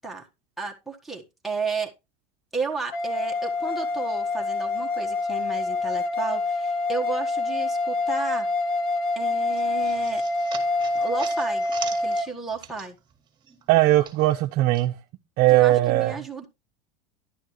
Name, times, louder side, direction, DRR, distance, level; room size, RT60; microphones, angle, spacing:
voice 1, 0.6-1.9 2.5-8.5 9.1-10.2 10.9-11.7 12.0-12.9 15.5-16.5, right 4 dB, ahead, 1.5 m, -33 dB
sound 1, 2.9-12.3, left 2 dB, 75° left, 1.6 m, -26 dB
sound 2, 9.5-13.2 13.4-14.9, right 8 dB, 25° right, 1.9 m, -41 dB
voice 2, 13.7-15.0 15.4-16.1, right 17 dB, 50° right, 0.7 m, -19 dB
11.5 x 8.9 x 3.1 m
supercardioid pair, 140°, 19 cm